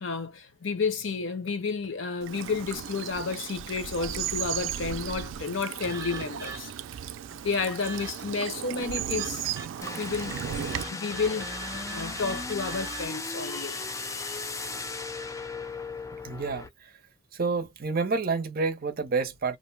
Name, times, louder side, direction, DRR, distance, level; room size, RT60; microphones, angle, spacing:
voice 1, 0.0-6.7 7.3-9.6 10.0-14.5, left 4 dB, 85° left, 0.8 m, -31 dB
Bird vocalization bird call bird song / Stream, 2.2-10.8, right 10 dB, 85° right, 0.3 m, -35 dB
sound 1, 5.8-6.9 7.8-8.4 9.2-10.0 10.7-13.1, right 3 dB, 20° right, 0.8 m, -41 dB
sound 2, 9.8-16.7, left 3 dB, 15° left, 0.3 m, -36 dB
voice 2, 16.2-16.9 17.3-19.6, right 4 dB, 50° right, 0.6 m, -29 dB
2.5 x 2.1 x 3.2 m
head